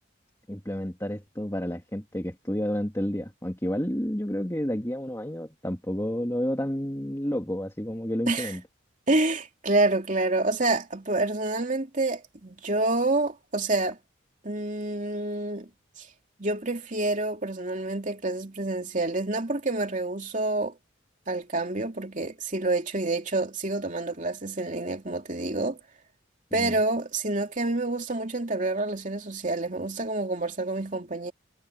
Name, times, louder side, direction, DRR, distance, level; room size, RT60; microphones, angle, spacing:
voice 1, 0.5-8.6 26.5-26.7, equal, 15° left, 2.0 m, -30 dB
voice 2, 9.1-14.0 14.4-15.7 16.0-16.1 16.4-20.7 21.3-25.8 26.5-31.3, right 2 dB, 40° right, 3.0 m, -28 dB
head